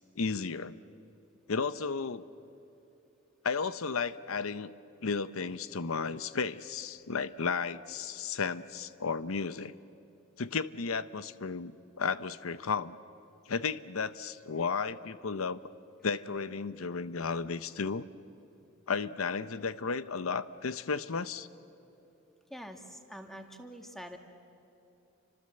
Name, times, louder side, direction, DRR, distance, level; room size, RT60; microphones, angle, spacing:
voice 1, 0.2-0.8 1.5-2.3 3.4-4.7 5.0-9.7 10.4-13.0 13.5-15.7 16.0-18.0 18.9-21.5, left 5 dB, 85° left, 14 dB, 0.8 m, -33 dB
voice 2, 22.5-24.2, equal, ahead, 4 dB, 2.1 m, -45 dB
30.0 x 25.5 x 7.8 m, 2.9 s
head